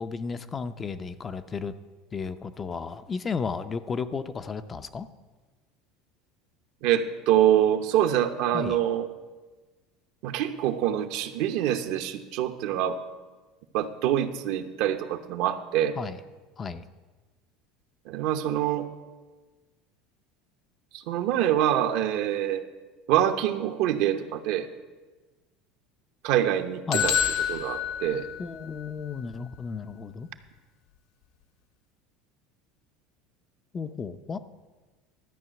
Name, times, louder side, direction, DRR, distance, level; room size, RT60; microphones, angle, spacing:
voice 1, 0.0-1.7 2.1-5.1 8.5-8.8 16.0-16.2 16.6-16.8 26.9-27.1 28.4-30.3 33.7-34.4, left 5 dB, 25° left, 10 dB, 0.5 m, -33 dB
voice 2, 6.8-9.1 10.2-13.0 13.7-16.0 18.1-18.9 20.9-22.6 23.1-24.7 26.2-27.1 27.5-28.3, right 11 dB, 65° right, 7 dB, 0.9 m, -25 dB
sound 1, 26.9-28.8, left 9 dB, 75° left, 1.5 m, -28 dB
12.5 x 5.6 x 8.8 m, 1.3 s
supercardioid pair, 135°, 0 cm